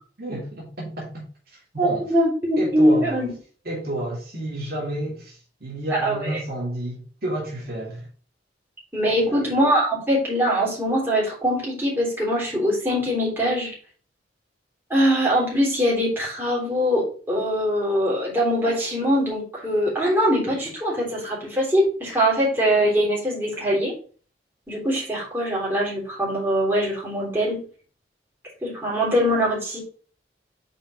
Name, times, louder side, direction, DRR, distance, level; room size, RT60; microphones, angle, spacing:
voice 1, 0.2-1.2 1.7-2.0 2.6-3.2 3.6-8.1 9.1-9.5, right 1 dB, 60° right, 2.5 m, -30 dB
voice 2, 1.8-3.3 5.9-6.4 8.9-13.7 14.9-23.9 24.7-27.6 28.6-29.8, equal, 15° right, 3.5 m, -22 dB
5.4 x 4.6 x 5.0 m
head